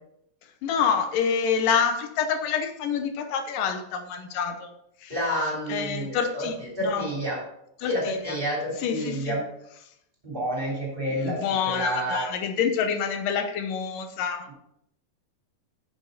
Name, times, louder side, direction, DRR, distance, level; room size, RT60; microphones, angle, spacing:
voice 1, 0.6-4.7 5.0-5.2 5.7-6.5 6.8-7.1 7.8-8.4 8.8-9.4 11.1-14.5, left 7 dB, 85° left, 6 dB, 2.6 m, -27 dB
voice 2, 5.1-7.4 7.8-9.4 10.2-11.4 11.6-12.2, equal, 15° right, -4 dB, 3.4 m, -29 dB
10.0 x 7.7 x 4.0 m, 0.77 s
omnidirectional pair, 3.7 m